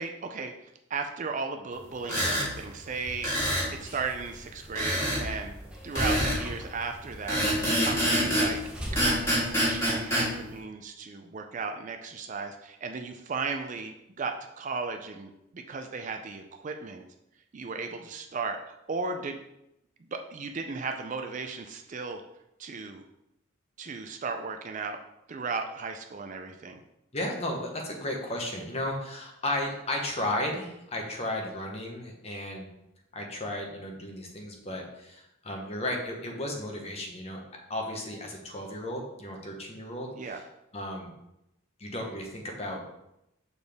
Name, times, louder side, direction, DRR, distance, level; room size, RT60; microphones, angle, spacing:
voice 1, 0.0-3.3 3.7-5.5 5.8-8.6 8.9-17.0 17.5-19.4 20.1-22.2 22.6-23.0 23.8-25.0 25.3-26.8 40.2-40.4, right 4 dB, 35° right, 5 dB, 0.4 m, -36 dB
sound 1, 2.0-2.5 3.2-3.7 4.8-5.2 6.0-6.4 7.3-8.5 9.0-10.3, equal, 15° left, 1.9 m, -26 dB
sound 2, 2.5-9.8, equal, 5° right, 0.7 m, -40 dB
voice 2, 27.1-32.7 33.1-37.4 37.7-40.4 40.7-41.1 41.8-42.8, left 1 dB, 30° left, 1 dB, 1.0 m, -34 dB
6.8 x 4.1 x 3.4 m, 0.86 s
head